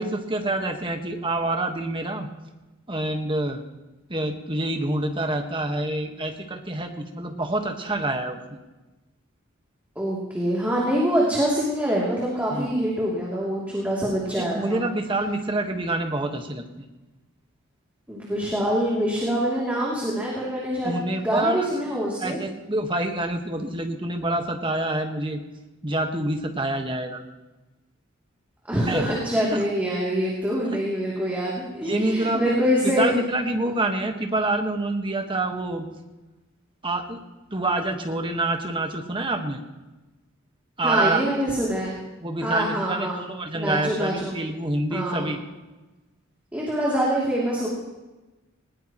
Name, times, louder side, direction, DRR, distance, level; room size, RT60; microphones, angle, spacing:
voice 1, 0.0-2.3 2.9-3.6 4.1-8.6 12.5-12.7 14.3-16.6 20.8-21.7 22.2-25.4 25.8-27.2 28.9-29.0 29.5-29.6 31.8-32.5 32.8-35.8 36.8-37.2 37.5-39.6 40.8-41.2 42.2-45.4, right 2 dB, 25° right, 4 dB, 1.4 m, -27 dB
voice 2, 9.9-14.8 18.1-22.4 28.7-33.1 40.8-42.0 42.4-43.2 43.5-44.4 44.9-45.3 46.5-47.7, equal, 10° right, -6 dB, 2.8 m, -25 dB
20.0 x 19.0 x 3.0 m, 1.1 s
head